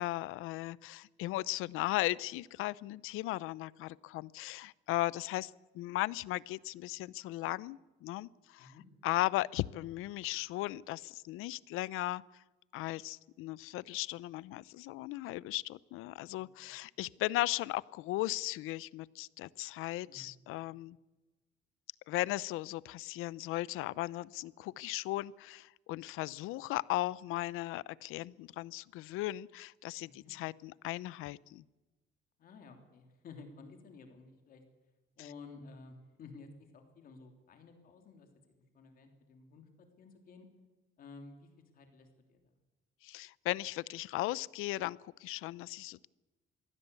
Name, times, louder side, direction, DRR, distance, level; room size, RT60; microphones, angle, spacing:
voice 1, 0.0-8.7 9.0-12.2 12.7-21.0 22.1-31.6 43.0-46.1, left 17 dB, 90° left, 21 dB, 0.6 m, -37 dB
voice 2, 16.3-16.7 20.1-20.3 30.0-30.3 32.4-34.6 35.2-36.5 36.7-40.5 41.0-42.4, left 4 dB, 45° left, 5 dB, 3.2 m, -54 dB
23.0 x 16.5 x 8.3 m, 1.2 s
cardioid pair, 180°, 21 cm